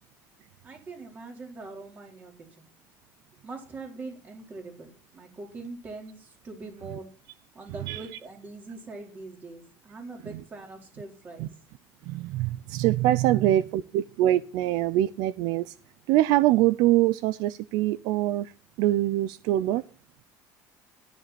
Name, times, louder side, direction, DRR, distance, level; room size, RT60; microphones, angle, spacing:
voice 1, 0.6-2.7 3.4-7.1 7.5-11.5, right 3 dB, 25° right, 4.0 m, -42 dB
voice 2, 12.1-15.7 16.1-18.5 18.8-19.8, right 14 dB, 70° right, 0.6 m, -24 dB
12.5 x 10.5 x 4.2 m
cardioid pair, 165°, 7 cm